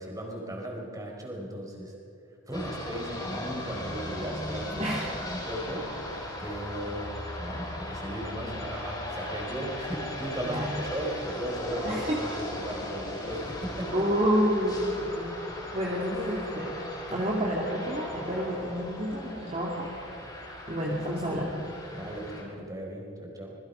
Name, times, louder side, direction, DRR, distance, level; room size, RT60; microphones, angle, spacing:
voice 1, 0.0-1.9 2.5-4.9 5.2-13.9 21.9-23.5, right 1 dB, 15° right, 0 dB, 4.7 m, -36 dB
sound 1, 2.5-22.4, left 1 dB, 20° left, 5.8 m, -38 dB
voice 2, 10.5-10.8 11.8-12.2 13.9-15.3 15.7-20.1 20.7-21.6 22.0-22.2, equal, 30° right, -4 dB, 2.7 m, -29 dB
27.0 x 22.0 x 5.7 m, 2.6 s
head